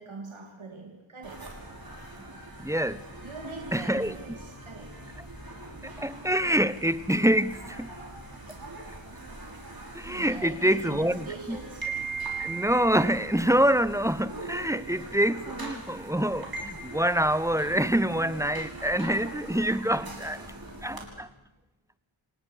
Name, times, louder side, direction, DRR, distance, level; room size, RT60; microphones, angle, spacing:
voice 1, 0.0-1.5 3.2-4.9 10.1-11.9, right 3 dB, 70° right, 2 dB, 3.0 m, -42 dB
sound 1, 1.2-21.0, right 3 dB, 45° right, 5.9 m, -41 dB
voice 2, 2.6-3.0 3.7-4.1 5.8-7.9 9.9-11.6 12.4-20.5 20.8-21.3, right 1 dB, 5° right, 16 dB, 0.9 m, -26 dB
28.5 x 18.5 x 6.5 m, 1.0 s
wide cardioid pair, 50°, 49 cm